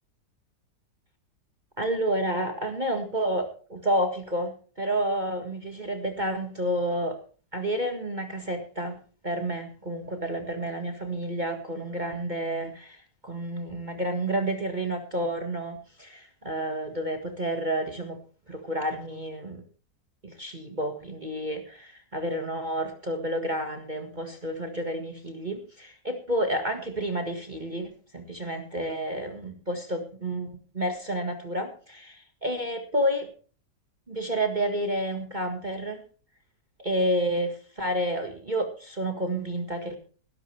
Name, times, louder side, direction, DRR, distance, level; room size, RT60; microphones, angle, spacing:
voice 1, 1.8-4.5 4.8-7.2 7.5-9.0 9.2-18.2 18.5-19.6 20.2-33.3 34.1-36.0 36.8-40.0, right 1 dB, 25° right, 4 dB, 1.8 m, -30 dB
18.5 x 12.0 x 3.4 m, 0.38 s
omnidirectional pair, 2.0 m